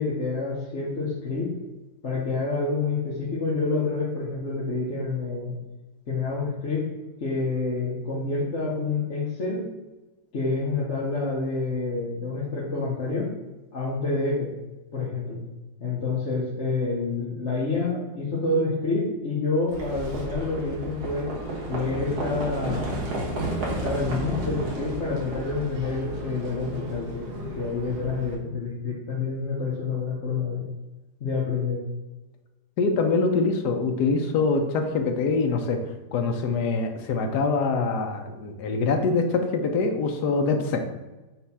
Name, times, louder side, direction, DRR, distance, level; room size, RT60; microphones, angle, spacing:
voice 1, 0.0-1.5 2.0-5.5 6.1-6.9 7.2-9.6 10.3-13.3 13.7-14.5 14.9-15.4 15.8-21.3 21.7-22.9 23.8-30.7 31.2-31.8, left 3 dB, 40° left, -5 dB, 1.3 m, -28 dB
Livestock farm animals working animals, 19.7-28.3, right 1 dB, 50° right, 1.9 m, -33 dB
voice 2, 32.8-35.8 36.1-40.8, left 4 dB, 65° left, 5 dB, 1.2 m, -24 dB
6.0 x 3.2 x 5.5 m, 1.1 s
omnidirectional pair, 2.1 m